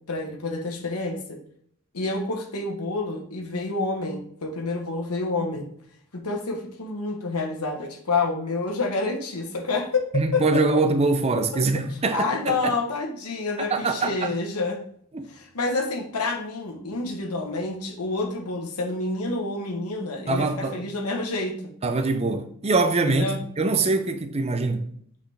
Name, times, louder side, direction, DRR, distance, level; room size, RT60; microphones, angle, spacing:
voice 1, 0.1-1.4 1.9-5.7 6.1-10.0 10.3-10.6 11.3-11.7 12.1-14.8 15.3-21.7 23.1-23.4, left 3 dB, 85° left, 1.2 m, -28 dB
voice 2, 10.1-12.7 13.6-14.3 15.1-15.3 20.3-20.8 21.8-23.3 23.6-24.9, right 3 dB, 30° right, 0.6 m, -23 dB
7.8 x 4.0 x 3.4 m
head